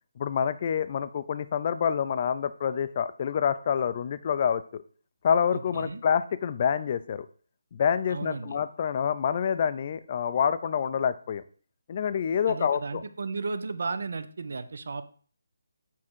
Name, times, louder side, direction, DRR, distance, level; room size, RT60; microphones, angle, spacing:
voice 1, 0.2-4.8 5.2-7.3 7.7-11.4 11.9-13.0, left 7 dB, 35° left, 13 dB, 0.5 m, -27 dB
voice 2, 5.5-6.0 8.1-8.6 12.5-15.0, right 4 dB, 65° right, 11 dB, 0.7 m, -34 dB
7.5 x 3.7 x 6.2 m, 0.43 s
hypercardioid pair, 165°, 0 cm